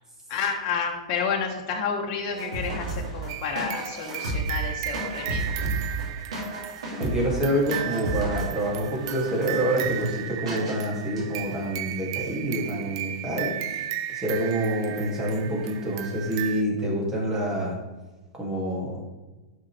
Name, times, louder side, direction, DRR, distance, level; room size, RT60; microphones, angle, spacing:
voice 1, 0.3-5.4, left 6 dB, 45° left, 0 dB, 1.2 m, -30 dB
sound 1, 2.3-10.2 10.4-10.8 11.1-11.5, right 2 dB, 85° right, 2.8 m, -32 dB
sound 2, 3.3-16.6, right 11 dB, 55° right, 0.5 m, -35 dB
voice 2, 7.0-13.8 14.1-17.8 18.3-19.0, right 1 dB, 20° right, -3 dB, 2.6 m, -27 dB
10.5 x 5.6 x 3.4 m, 1.2 s
hypercardioid pair, 115°, 3 cm